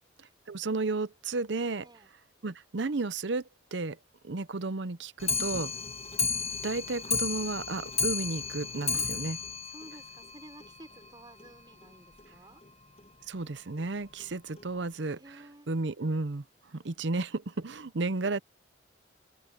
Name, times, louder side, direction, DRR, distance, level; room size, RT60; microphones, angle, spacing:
voice 1, 0.5-1.9 2.4-3.4 3.7-4.0 4.2-5.7 6.6-9.4 13.3-15.2 15.7-16.4 16.7-18.4, right 3 dB, 65° right, 0.7 m, -32 dB
voice 2, 1.8-2.1 5.7-5.9 8.9-9.3 9.7-12.6 15.1-15.7, right 1 dB, 20° right, 5.6 m, -53 dB
Clock, 5.2-10.7 11.0-11.1 11.4-11.5 11.8-11.9 12.2-12.3 13.0-13.1 13.8-13.9 14.6-14.7, left 5 dB, 35° left, 1.6 m, -33 dB
open air
head